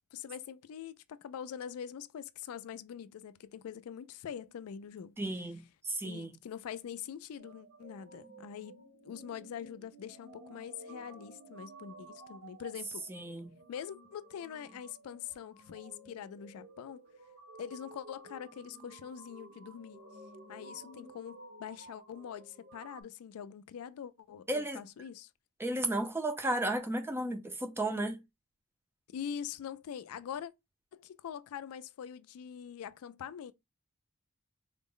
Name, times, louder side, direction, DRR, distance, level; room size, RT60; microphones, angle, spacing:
voice 1, 0.1-5.2 6.0-8.7 9.0-13.0 13.7-17.0 17.6-20.0 20.5-25.3 29.1-30.5 30.9-33.5, left 8 dB, 75° left, 0.3 m, -44 dB
voice 2, 5.2-6.4 13.1-13.5 24.5-24.8 25.6-28.2, right 1 dB, 10° right, 0.5 m, -34 dB
sound 1, 7.4-23.0, right 2 dB, 55° right, 1.0 m, -53 dB
3.8 x 2.1 x 3.7 m
head